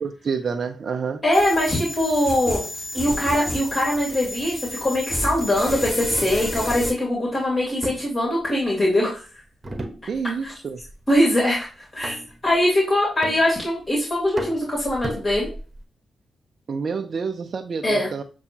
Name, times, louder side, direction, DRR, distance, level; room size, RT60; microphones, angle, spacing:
voice 1, 0.0-1.2 10.1-10.8 16.7-18.2, right 5 dB, 60° right, 6 dB, 0.4 m, -28 dB
voice 2, 1.2-2.7 2.9-9.2 10.4-10.5 11.1-11.7 11.9-12.2 12.4-15.5 17.8-18.1, left 1 dB, 35° left, -4 dB, 1.9 m, -22 dB
sound 1, 1.3-6.9, left 1 dB, 15° left, 1.9 m, -31 dB
sound 2, 6.2-6.5 7.8-8.9 9.6-10.5 10.8-11.2 12.0-12.5 13.2-13.9 14.4-15.8, right 1 dB, 35° right, 1.0 m, -35 dB
6.8 x 2.3 x 2.8 m, 0.36 s
supercardioid pair, 45°, 0 cm